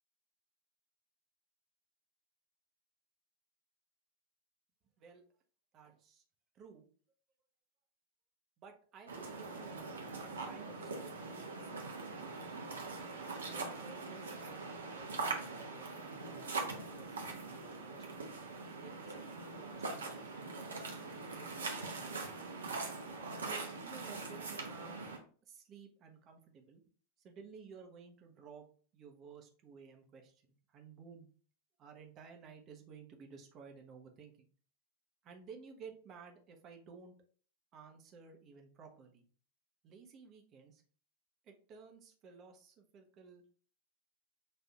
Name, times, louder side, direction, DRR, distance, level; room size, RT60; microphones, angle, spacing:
voice 1, 5.7-6.2 6.5-6.9 8.6-9.9 10.4-12.8 13.5-18.4 18.8-22.3 23.4-25.0 25.4-26.8 27.2-28.7 28.9-31.3 31.8-34.5 35.2-37.1 37.7-39.3 39.8-40.8 41.4-43.4, right 5 dB, 30° right, 3 dB, 0.7 m, -55 dB
sound 1, 9.1-25.2, right 3 dB, 70° right, 0.7 m, -42 dB
6.0 x 2.6 x 2.4 m, 0.43 s
figure-of-eight pair, 90°, 0 cm